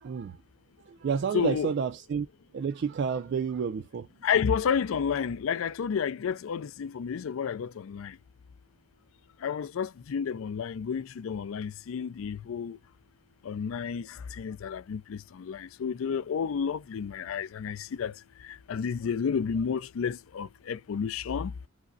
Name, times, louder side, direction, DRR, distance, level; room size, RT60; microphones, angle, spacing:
voice 1, 0.0-0.4 0.9-2.3 2.5-4.1, right 6 dB, 55° right, 0.3 m, -30 dB
voice 2, 1.3-1.7 4.2-8.2 9.4-12.8 13.4-18.1 18.4-21.5, left 7 dB, 75° left, 0.4 m, -31 dB
4.9 x 2.1 x 2.5 m
head